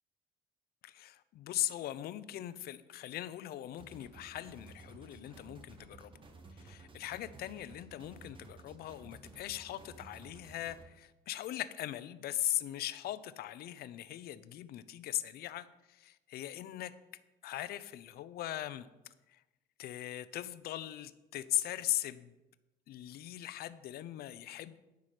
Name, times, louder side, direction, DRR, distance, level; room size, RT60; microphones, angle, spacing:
voice 1, 0.8-6.1 6.5-16.9 17.4-18.9 19.3-19.4 19.8-22.3 22.9-24.8, left 13 dB, 65° left, 14 dB, 0.6 m, -39 dB
sound 1, 3.8-10.8, right 3 dB, 30° right, 1.3 m, -54 dB
10.5 x 4.9 x 7.5 m, 1.0 s
cardioid pair, 110°, 17 cm